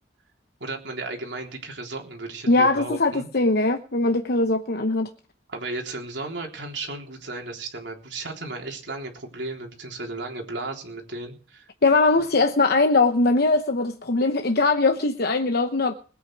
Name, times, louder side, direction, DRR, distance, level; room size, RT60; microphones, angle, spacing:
voice 1, 0.6-3.3 5.5-11.6, right 2 dB, 70° right, 3.7 m, -34 dB
voice 2, 2.5-5.1 11.8-15.9, left 3 dB, 60° left, 1.0 m, -21 dB
20.5 x 9.1 x 4.7 m
head